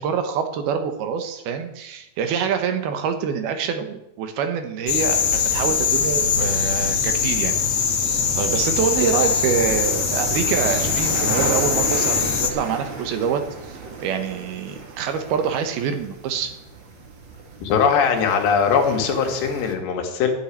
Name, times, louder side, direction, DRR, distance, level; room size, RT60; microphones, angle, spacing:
voice 1, 0.0-7.8 8.3-13.8 14.0-16.5, right 7 dB, 75° right, 7 dB, 2.9 m, -25 dB
sound 1, 4.9-12.5, left 6 dB, 60° left, 1.4 m, -22 dB
sound 2, 5.0-19.8, right 4 dB, 55° right, 1.3 m, -34 dB
voice 2, 17.6-20.3, left 6 dB, 85° left, 3 dB, 3.9 m, -20 dB
11.0 x 7.3 x 9.8 m, 0.86 s
omnidirectional pair, 4.8 m